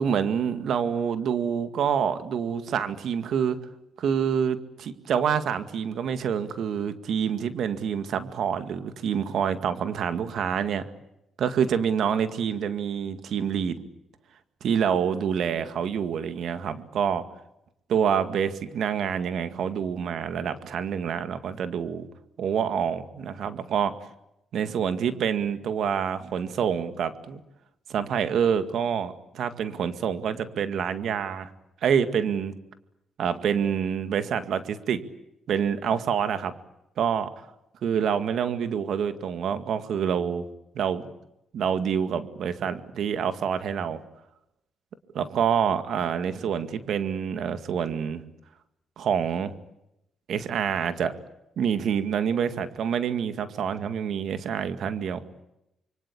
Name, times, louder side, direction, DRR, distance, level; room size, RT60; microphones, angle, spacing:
voice 1, 0.0-3.6 4.0-10.8 11.4-13.8 14.6-17.2 17.9-22.1 22.4-23.9 24.5-27.4 27.9-31.5 31.8-32.5 33.2-35.0 35.5-36.5 37.0-37.4 37.8-40.4 40.7-41.1 41.5-44.0 45.1-48.2 49.0-49.6 50.3-51.1 51.6-55.2, right 7 dB, 70° right, 10 dB, 2.0 m, -27 dB
26.0 x 23.5 x 8.6 m, 0.86 s
cardioid pair, 90°, 0 cm